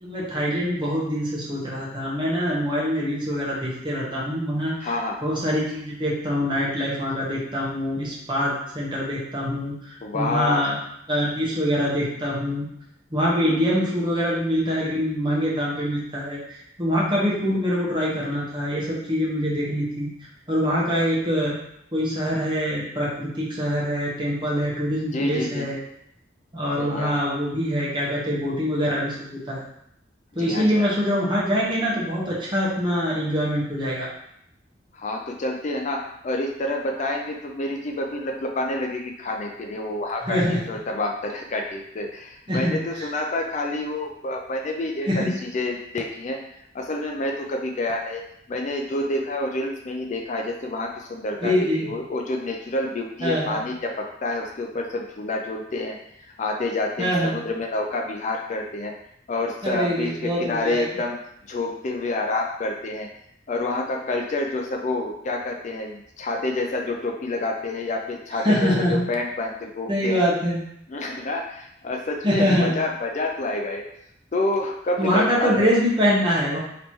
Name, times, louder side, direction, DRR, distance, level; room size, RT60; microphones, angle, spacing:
voice 1, 0.0-4.9 5.2-10.8 11.1-12.7 13.1-20.1 20.5-21.5 21.9-25.8 26.5-29.6 30.3-34.1 40.3-40.6 42.5-43.0 45.1-45.3 51.4-51.9 53.2-53.6 57.0-57.4 59.6-60.9 68.4-69.0 69.9-70.6 72.2-72.7 75.0-76.6, equal, 25° right, -5 dB, 1.1 m, -24 dB
voice 2, 4.8-5.2 10.0-10.7 13.4-13.7 25.1-25.7 26.8-27.4 30.4-30.9 34.9-46.4 46.7-48.2 48.5-58.9 59.3-61.2 61.5-63.1 63.5-70.2 70.9-73.8 74.3-75.7, left 2 dB, 40° left, 2 dB, 0.4 m, -28 dB
3.2 x 3.0 x 4.4 m, 0.74 s
head